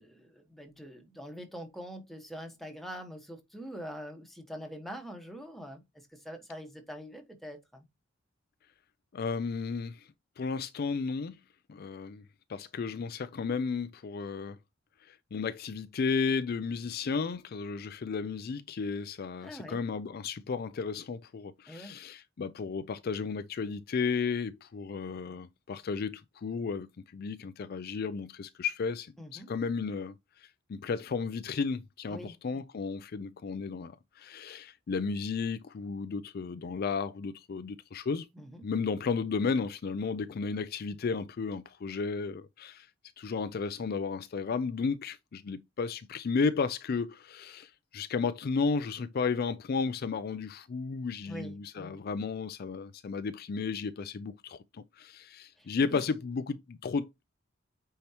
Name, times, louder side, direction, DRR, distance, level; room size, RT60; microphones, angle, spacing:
voice 1, 0.0-5.8 6.1-7.8 19.4-19.8 21.7-22.0 29.2-29.5 32.1-32.3 38.3-38.6 51.3-52.0 55.6-56.0, equal, ahead, 1.4 m, -44 dB
voice 2, 9.1-10.1 10.4-11.4 11.7-12.2 12.5-14.6 15.0-38.3 38.6-42.9 43.2-57.2, left 5 dB, 50° left, 0.4 m, -33 dB
8.5 x 4.6 x 2.9 m
head